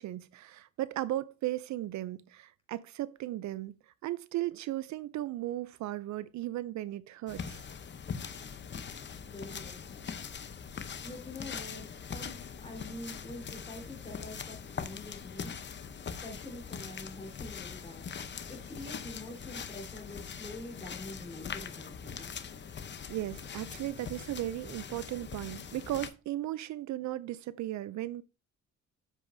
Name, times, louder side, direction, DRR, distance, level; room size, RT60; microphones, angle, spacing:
voice 1, 0.0-3.7 4.0-7.6 23.1-28.2, right 15 dB, 70° right, 0.5 m, -36 dB
sound 1, 7.3-26.1, left 6 dB, 35° left, 0.8 m, -42 dB
voice 2, 9.3-10.5 11.0-15.5 16.0-22.3, left 1 dB, 20° left, 3.5 m, -46 dB
8.1 x 7.1 x 2.6 m
cardioid pair, 90°, 30 cm